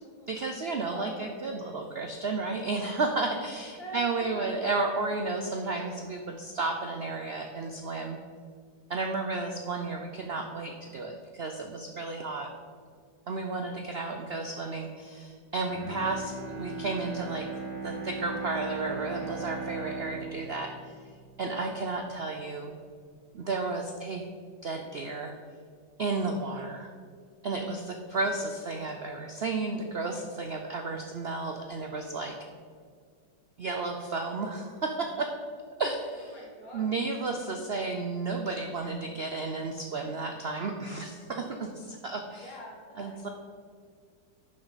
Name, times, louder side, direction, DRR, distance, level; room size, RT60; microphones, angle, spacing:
voice 1, 0.3-8.2 8.9-12.5 13.3-17.5 17.8-20.9 21.4-22.7 23.3-24.3 24.6-25.3 26.0-26.9 27.4-32.4 33.6-35.3 35.8-36.4 36.7-42.5 43.0-43.3, right 3 dB, 90° right, 4 dB, 0.5 m, -33 dB
voice 2, 0.9-1.8 3.8-4.6 36.3-36.9 41.5-41.6 42.4-43.3, equal, 90° left, -4 dB, 3.1 m, -45 dB
Bowed string instrument, 15.6-21.9 22.3-22.4, right 3 dB, 30° right, 1.6 m, -38 dB
10.5 x 6.9 x 4.0 m, 2.1 s
omnidirectional pair, 2.0 m